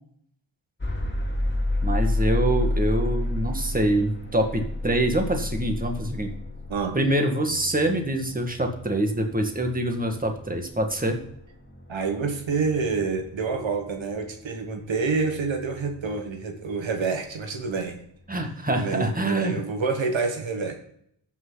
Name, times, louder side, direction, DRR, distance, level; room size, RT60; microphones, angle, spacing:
sound 1, 0.8-16.7, left 1 dB, 25° left, 2.3 m, -31 dB
voice 1, 1.8-6.3 6.9-11.2 18.3-19.6, right 1 dB, 20° right, 3 dB, 2.0 m, -25 dB
voice 2, 11.9-18.0 18.8-20.7, right 4 dB, 80° right, 4 dB, 1.5 m, -27 dB
14.0 x 6.2 x 4.0 m, 0.68 s
cardioid pair, 60°, 46 cm